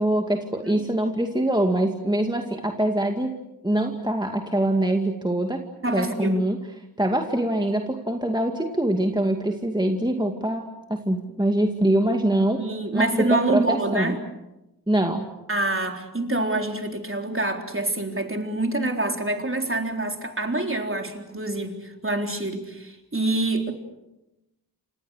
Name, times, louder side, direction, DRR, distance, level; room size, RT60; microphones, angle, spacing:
voice 1, 0.0-3.3 3.6-5.6 5.9-6.6 7.0-12.6 12.9-14.2 14.9-15.3, right 1 dB, 10° right, 3 dB, 2.3 m, -24 dB
voice 2, 5.8-6.4 12.6-14.2 15.5-23.7, right 2 dB, 35° right, 3 dB, 3.9 m, -26 dB
29.0 x 27.0 x 6.5 m, 0.93 s
wide cardioid pair, 65°, 38 cm